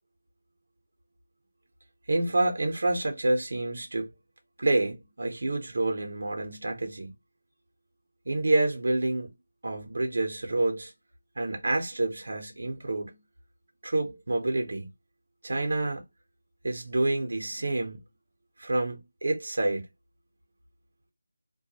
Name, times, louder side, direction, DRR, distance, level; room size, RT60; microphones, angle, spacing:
voice 1, 2.1-4.1 4.6-7.1 8.3-9.3 9.6-10.9 11.4-13.2 13.8-14.9 15.4-16.0 16.6-18.0 18.6-19.9, right 2 dB, 60° right, 0.7 m, -28 dB
2.2 x 2.0 x 2.7 m
figure-of-eight pair, 175°, 0 cm